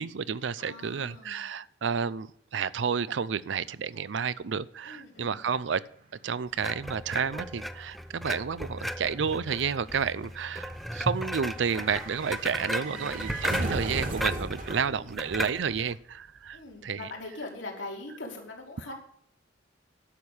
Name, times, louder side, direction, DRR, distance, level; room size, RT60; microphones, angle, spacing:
voice 1, 0.0-5.8 6.2-17.1, right 6 dB, 70° right, 18 dB, 0.5 m, -31 dB
voice 2, 0.6-1.4 4.8-5.5 12.8-13.4 14.7-15.2 16.5-18.9, left 2 dB, 75° left, 0 dB, 3.5 m, -42 dB
sound 1, 5.8-16.2 16.4-16.5, right 2 dB, 45° right, 2.0 m, -39 dB
sound 2, 6.6-16.0, equal, ahead, 0.5 m, -36 dB
10.5 x 6.6 x 7.1 m, 0.66 s
head